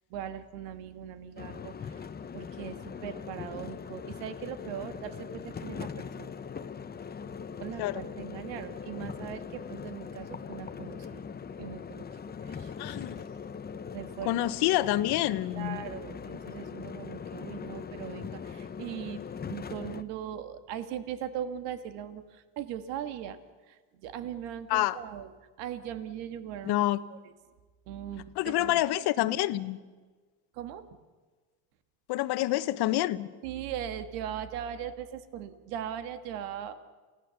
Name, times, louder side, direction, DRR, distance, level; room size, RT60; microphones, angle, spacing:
voice 1, 0.1-2.1 2.3-6.3 7.6-11.3 11.6-13.0 13.9-14.5 15.5-19.2 19.5-23.4 23.7-25.3 25.6-27.3 27.9-28.8 30.5-30.8 33.4-36.7, right 9 dB, 80° right, 9 dB, 1.8 m, -40 dB
sound 1, 1.4-20.0, left 6 dB, 25° left, 0.9 m, -41 dB
voice 2, 12.8-13.2 14.3-15.8 24.7-25.0 26.6-27.0 28.4-29.8 32.1-33.3, left 15 dB, 65° left, 13 dB, 1.2 m, -27 dB
28.5 x 17.0 x 7.1 m, 1.3 s
supercardioid pair, 110°, 42 cm